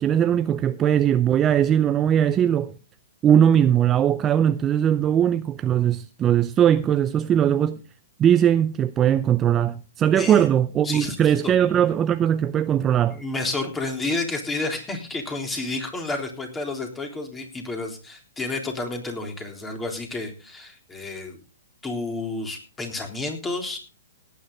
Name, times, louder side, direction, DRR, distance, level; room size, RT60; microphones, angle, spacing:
voice 1, 0.0-2.7 3.2-7.8 8.2-13.2, right 9 dB, 20° right, 0.5 m, -20 dB
voice 2, 10.1-10.5 10.8-11.2 11.4-11.5 13.1-21.4 21.8-23.8, left 2 dB, 10° left, 3.6 m, -30 dB
18.0 x 9.4 x 3.8 m
hypercardioid pair, 135°, 0 cm